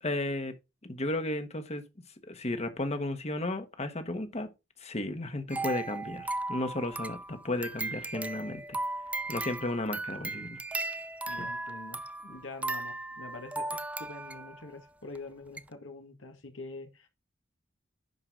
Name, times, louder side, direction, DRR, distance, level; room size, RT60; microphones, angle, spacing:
voice 1, 0.0-0.5 0.8-1.8 2.3-4.5 4.8-8.8 9.3-10.6 11.4-11.5, left 2 dB, 35° left, 1.3 m, -34 dB
sound 1, 5.5-14.7 15.1-15.2 15.6-15.7, right 2 dB, 5° right, 0.4 m, -37 dB
voice 2, 11.3-17.1, left 3 dB, 80° left, 1.9 m, -45 dB
10.5 x 4.9 x 3.8 m
head